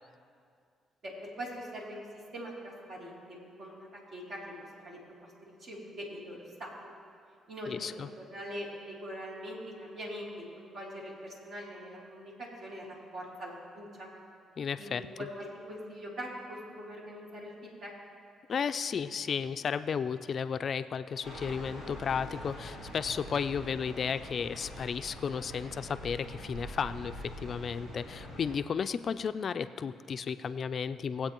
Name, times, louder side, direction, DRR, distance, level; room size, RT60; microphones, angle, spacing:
voice 1, 1.0-2.0 2.3-5.0 5.4-6.9 7.5-14.1 14.8-17.9, equal, 60° right, -4 dB, 3.0 m, -43 dB
voice 2, 7.7-8.1 14.6-15.3 18.5-31.3, left 6 dB, 50° left, 12 dB, 0.4 m, -33 dB
sound 1, 21.2-28.5, equal, 90° right, 3.3 m, -44 dB
21.0 x 8.2 x 3.0 m, 2.3 s
cardioid pair, 90°, 0 cm